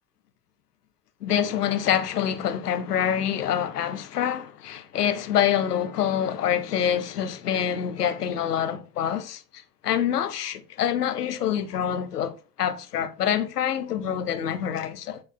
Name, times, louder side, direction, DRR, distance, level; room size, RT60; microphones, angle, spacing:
voice 1, 1.2-9.4 9.8-15.2, left 9 dB, 90° left, 0.6 m, -26 dB
8.4 x 3.1 x 4.1 m
hypercardioid pair, 55°, 45 cm